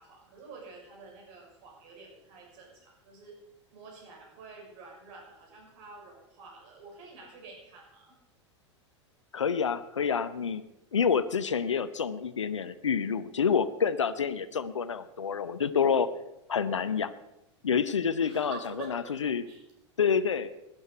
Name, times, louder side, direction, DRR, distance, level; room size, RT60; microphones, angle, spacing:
voice 1, 0.0-3.4 3.7-8.2 16.7-16.9 18.2-19.6, right 4 dB, 50° right, 0 dB, 5.6 m, -48 dB
voice 2, 9.3-10.6 10.9-16.1 16.5-17.1 17.6-18.6 18.9-19.4 20.0-20.5, left 6 dB, 80° left, 14 dB, 0.7 m, -28 dB
17.5 x 11.5 x 4.6 m, 0.88 s
figure-of-eight pair, 85°, 16 cm